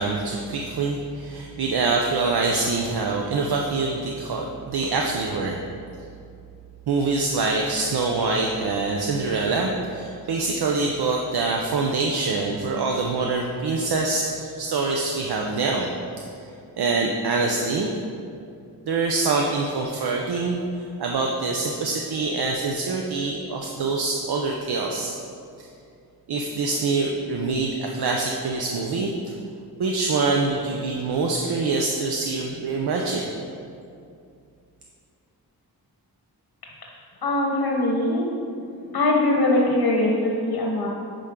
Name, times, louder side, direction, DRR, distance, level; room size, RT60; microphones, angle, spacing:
voice 1, 0.0-5.6 6.9-15.9 16.2-17.9 18.9-25.1 25.6-25.7 26.3-29.3 29.8-33.3, right 3 dB, 85° right, 0 dB, 0.7 m, -25 dB
voice 2, 37.2-38.3 38.9-40.9, left 2 dB, 85° left, -1 dB, 1.1 m, -21 dB
10.0 x 5.3 x 3.7 m, 2.5 s
wide cardioid pair, 115°, 37 cm